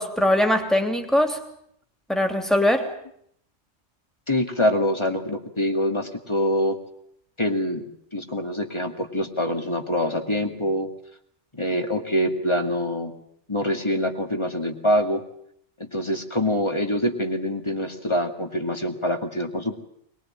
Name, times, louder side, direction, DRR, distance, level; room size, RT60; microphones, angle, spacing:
voice 1, 0.0-1.4 2.1-2.9, left 1 dB, ahead, 5 dB, 2.9 m, -21 dB
voice 2, 4.3-6.8 7.4-10.9 11.5-13.1 13.5-15.2 15.8-19.8, left 1 dB, 25° left, 5 dB, 2.3 m, -25 dB
22.5 x 21.5 x 8.9 m, 0.70 s
omnidirectional pair, 1.2 m